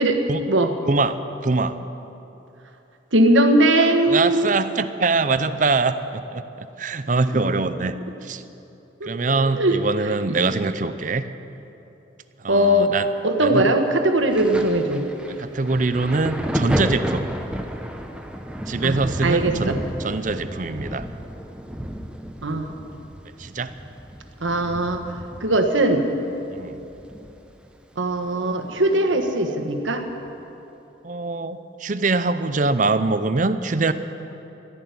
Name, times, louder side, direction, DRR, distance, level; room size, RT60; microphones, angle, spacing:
voice 1, 0.9-1.8 4.1-7.9 8.2-8.4 9.0-11.3 12.4-13.1 13.4-13.7 15.3-17.3 18.7-21.1 23.4-23.7 26.5-26.9 31.0-33.9, right 3 dB, 40° right, 12 dB, 0.6 m, -23 dB
voice 2, 3.1-4.6 9.0-9.7 12.5-12.9 13.2-15.0 18.8-19.8 22.4-22.7 24.4-25.0 25.4-26.1 28.0-30.0, right 1 dB, 90° right, 5 dB, 1.4 m, -20 dB
Thunder, 14.3-27.7 27.9-29.3 30.1-30.3, equal, 5° right, 0.8 m, -32 dB
14.0 x 11.0 x 9.4 m, 3.0 s
head